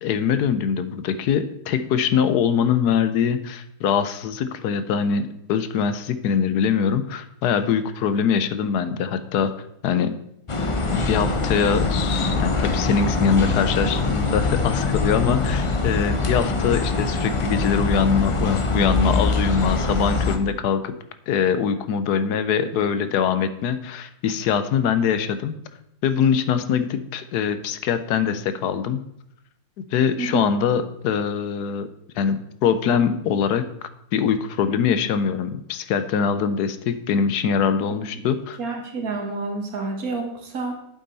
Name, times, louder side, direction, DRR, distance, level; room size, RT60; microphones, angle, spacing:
voice 1, 0.0-9.5 9.8-10.1 10.9-20.9 21.3-25.5 26.0-29.0 29.9-31.9 32.2-33.6 34.1-38.6, left 7 dB, 85° left, 11 dB, 1.3 m, -23 dB
sound 1, 10.5-20.4, left 3 dB, 40° left, 0.4 m, -23 dB
voice 2, 38.6-40.7, right 3 dB, 65° right, 2 dB, 2.0 m, -29 dB
8.6 x 7.7 x 4.1 m, 0.75 s
omnidirectional pair, 1.7 m